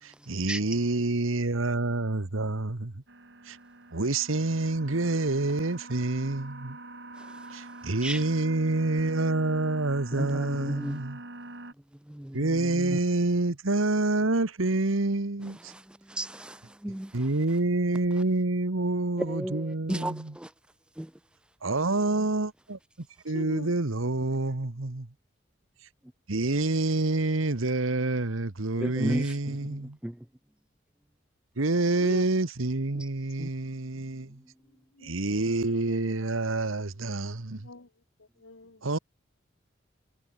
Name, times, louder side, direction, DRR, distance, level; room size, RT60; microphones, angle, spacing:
voice 1, 0.0-3.0 3.4-3.6 3.9-6.8 7.5-11.2 12.3-15.7 17.1-20.4 21.6-25.1 26.3-30.0 31.6-34.4 35.0-37.7 38.8-39.0, right 2 dB, 90° right, 1.4 m, -27 dB
sound 1, 3.1-11.7, right 2 dB, 60° right, 3.4 m, -45 dB
voice 2, 10.1-11.0 12.1-13.0 15.7-17.1 19.2-20.5 21.0-21.1 28.8-30.2 33.0-33.1 33.4-33.5, right 1 dB, 5° right, 0.4 m, -34 dB
voice 3, 23.3-23.7 28.7-28.9 32.0-32.3 34.6-35.1 37.5-37.9 38.2-38.9, left 2 dB, 85° left, 1.7 m, -43 dB
head